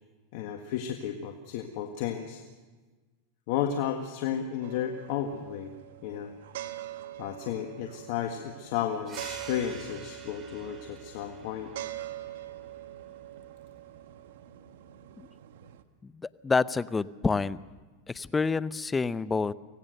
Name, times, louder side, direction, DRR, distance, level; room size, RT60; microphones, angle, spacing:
voice 1, 0.3-2.4 3.5-5.7 6.0-6.3 7.2-11.7, left 9 dB, 60° left, 4 dB, 1.7 m, -33 dB
sound 1, 4.6-15.8, right 13 dB, 75° right, 1.2 m, -44 dB
sound 2, 9.1-14.2, right 5 dB, 30° right, 4.1 m, -49 dB
voice 2, 16.0-17.6 18.1-19.5, left 4 dB, 15° left, 17 dB, 0.6 m, -28 dB
24.5 x 17.5 x 6.6 m, 1.3 s
hypercardioid pair, 115°, 0 cm